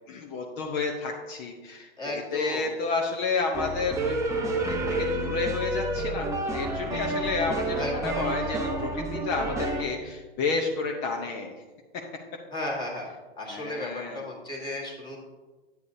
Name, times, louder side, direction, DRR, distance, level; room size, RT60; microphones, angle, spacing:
voice 1, 0.1-11.5 13.5-14.2, left 4 dB, 35° left, 1 dB, 0.9 m, -31 dB
voice 2, 2.0-2.7 7.7-8.5 12.5-13.1 13.4-15.2, left 1 dB, 15° left, -3 dB, 1.6 m, -34 dB
sound 1, 3.5-9.8, right 1 dB, 10° right, 0.7 m, -29 dB
9.4 x 8.6 x 2.7 m, 1.3 s
hypercardioid pair, 130°, 31 cm